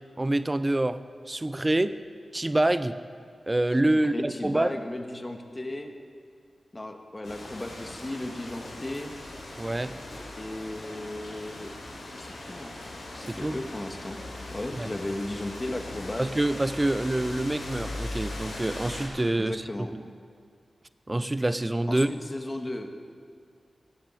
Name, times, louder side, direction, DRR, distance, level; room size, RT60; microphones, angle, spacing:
voice 1, 0.2-1.0 1.3-1.9 2.3-3.0 3.5-4.7 9.6-10.0 13.3-13.6 14.7-14.9 16.2-20.0 21.1-22.1, right 1 dB, 30° right, 13 dB, 0.7 m, -26 dB
voice 2, 4.1-5.9 6.7-9.1 10.3-11.7 12.1-12.8 13.1-14.2 14.5-16.3 19.4-19.9 21.9-22.9, left 1 dB, 30° left, 5 dB, 1.6 m, -35 dB
sound 1, 7.2-19.1, left 2 dB, 90° left, 3.6 m, -40 dB
18.0 x 7.6 x 7.7 m, 2.2 s
cardioid pair, 40°, 0 cm